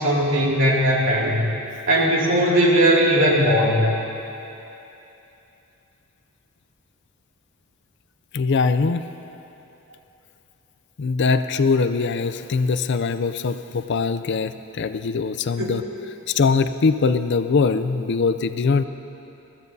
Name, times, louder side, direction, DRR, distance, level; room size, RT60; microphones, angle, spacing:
voice 1, 0.0-1.4 1.9-3.9, equal, 60° right, -4 dB, 2.4 m, -18 dB
voice 2, 8.3-9.1 11.0-15.8 16.3-18.8, left 4 dB, 50° left, 11 dB, 0.4 m, -22 dB
20.5 x 15.0 x 2.7 m, 2.9 s
head